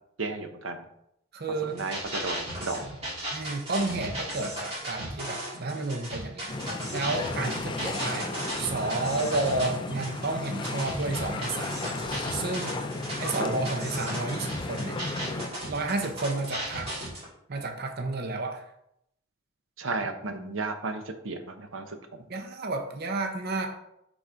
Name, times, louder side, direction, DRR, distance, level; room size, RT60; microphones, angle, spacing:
voice 1, 0.2-0.8 1.6-2.9 19.8-22.0, right 3 dB, 80° right, 6 dB, 0.9 m, -33 dB
voice 2, 1.3-1.8 3.3-6.5 6.9-8.3 8.6-12.0 12.3-12.8 13.2-15.0 15.6-16.9 17.5-18.6 22.3-23.7, right 2 dB, 55° right, 5 dB, 0.8 m, -31 dB
sound 1, 1.7-17.2, right 1 dB, 30° right, 2.7 m, -36 dB
sound 2, 6.5-15.5, left 2 dB, 25° left, 0.5 m, -34 dB
5.7 x 4.1 x 5.0 m, 0.77 s
head